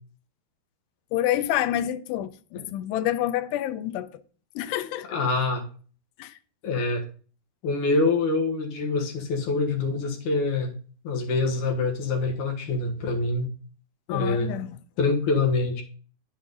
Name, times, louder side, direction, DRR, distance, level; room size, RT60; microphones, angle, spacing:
voice 1, 1.1-4.2 4.6-5.2 6.2-6.3 14.1-14.8, left 12 dB, 90° left, 2.8 m, -28 dB
voice 2, 5.1-5.7 6.6-7.0 7.6-10.7 11.0-13.5 14.1-14.5 15.0-15.8, left 3 dB, 60° left, 2.4 m, -25 dB
9.7 x 7.3 x 4.0 m
omnidirectional pair, 4.8 m